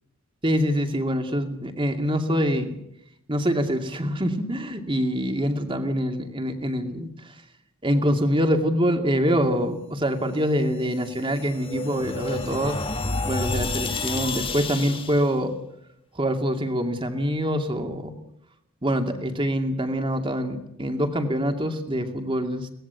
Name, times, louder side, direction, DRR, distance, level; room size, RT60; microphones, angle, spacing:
voice 1, 0.4-2.8 3.3-7.3 7.8-12.8 13.2-15.5 16.1-18.1 18.8-22.7, equal, 25° right, 6 dB, 2.4 m, -25 dB
sound 1, 10.8-15.3, left 3 dB, 25° left, 1.6 m, -30 dB
23.0 x 19.0 x 8.2 m, 0.79 s
head